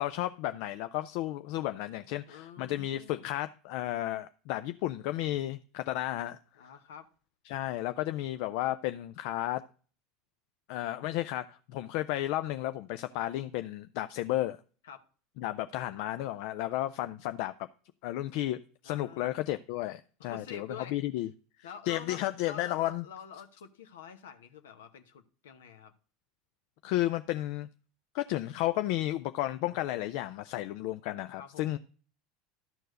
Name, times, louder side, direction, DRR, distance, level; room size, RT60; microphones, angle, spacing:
voice 1, 0.0-6.4 7.5-9.6 10.7-14.6 15.4-17.5 18.0-18.6 18.8-21.3 21.9-23.0 26.8-27.7 28.1-31.8, left 15 dB, 60° left, 0.4 m, -33 dB
voice 2, 2.3-3.4 6.5-7.1 14.8-15.1 18.8-19.2 20.2-21.3 21.6-25.9 31.4-31.8, left 7 dB, 80° left, 1.0 m, -47 dB
12.5 x 4.6 x 6.4 m
hypercardioid pair, 85°, 0 cm